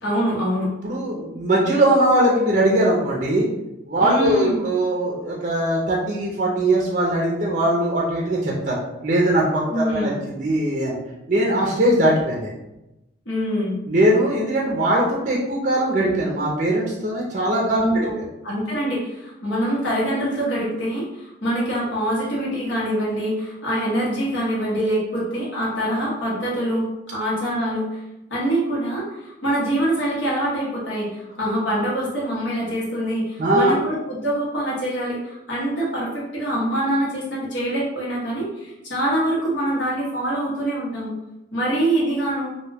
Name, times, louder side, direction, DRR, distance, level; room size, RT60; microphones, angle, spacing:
voice 1, 0.0-0.7 4.0-4.6 9.7-10.2 13.3-13.8 17.8-18.2 18.4-28.0 28.3-41.1 41.5-42.5, right 1 dB, 75° left, -6 dB, 0.9 m, -24 dB
voice 2, 0.8-3.5 3.9-8.8 9.0-10.9 11.3-12.5 13.9-17.8 33.4-33.7, right 1 dB, 40° right, -3 dB, 0.4 m, -20 dB
2.2 x 2.2 x 3.3 m, 0.93 s
head